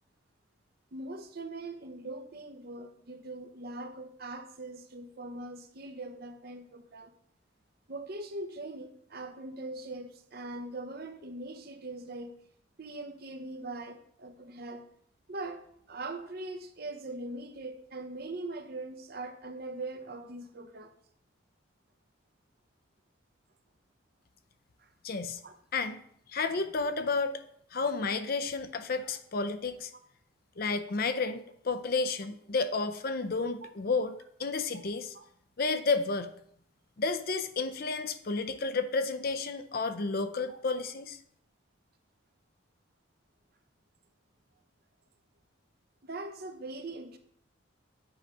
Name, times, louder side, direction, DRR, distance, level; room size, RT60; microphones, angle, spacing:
voice 1, 0.9-7.1 7.9-12.4 12.8-14.9 15.3-21.0 24.8-24.9 25.4-25.5 29.9-30.0 31.2-31.3 35.1-35.2 40.5-40.6 46.0-47.2, right 2 dB, 50° right, 0.8 m, -41 dB
voice 2, 25.0-25.4 25.7-26.0 26.3-27.4 27.7-29.9 30.6-35.1 35.6-36.3 37.0-41.2, left 4 dB, 50° left, 0.5 m, -31 dB
7.7 x 4.8 x 5.3 m
head